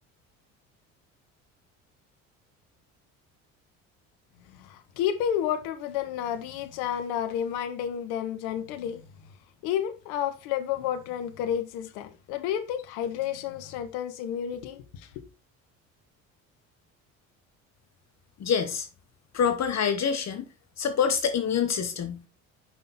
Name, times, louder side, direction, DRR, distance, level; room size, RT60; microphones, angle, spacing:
voice 1, 4.5-9.0 9.6-15.2, left 9 dB, 75° left, 1.1 m, -31 dB
voice 2, 18.4-18.9 19.3-20.4 20.8-22.2, left 7 dB, 45° left, 1.1 m, -26 dB
6.2 x 5.5 x 4.1 m
hypercardioid pair, 65°, 39 cm